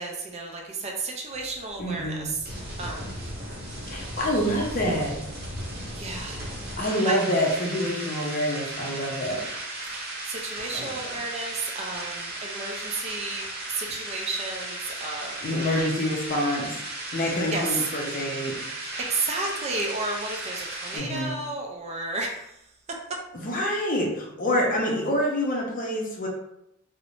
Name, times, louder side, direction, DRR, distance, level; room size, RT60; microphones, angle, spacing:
voice 1, 0.0-2.4 2.8-3.2 5.9-6.4 7.1-7.2 9.9-13.4 13.7-15.5 17.5-17.8 19.1-22.5, right 3 dB, 30° right, 0 dB, 0.4 m, -32 dB
sound 1, 1.3-21.0, right 1 dB, 50° right, 0.8 m, -36 dB
voice 2, 1.8-2.3 3.9-5.2 6.8-9.4 10.7-11.2 15.4-16.7 17.1-18.6 20.9-21.4 23.3-26.3, equal, 40° left, -1 dB, 0.5 m, -27 dB
2.5 x 2.0 x 3.0 m, 0.82 s
head